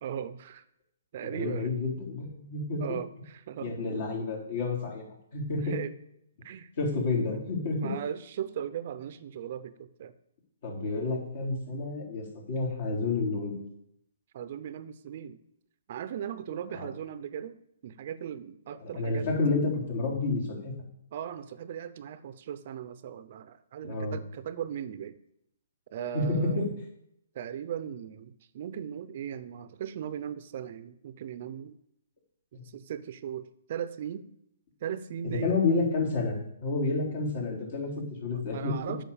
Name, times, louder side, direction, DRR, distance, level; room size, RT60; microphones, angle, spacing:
voice 1, 0.0-0.6 1.1-1.7 2.8-3.7 5.6-5.9 6.4-6.7 7.3-7.4 7.8-10.1 14.3-15.4 15.9-17.6 17.8-19.3 21.1-25.2 25.9-26.8 27.3-31.8 32.5-34.3 34.8-35.6 38.2-39.0, right 9 dB, 50° right, 14 dB, 0.6 m, -38 dB
voice 2, 1.2-2.8 3.6-5.0 5.3-5.7 6.8-7.9 10.6-13.6 16.7-16.9 18.8-20.7 23.8-24.2 26.1-26.7 35.2-38.7, left 3 dB, 55° left, -2 dB, 3.9 m, -30 dB
8.6 x 5.9 x 7.0 m, 0.75 s
hypercardioid pair, 145°, 0 cm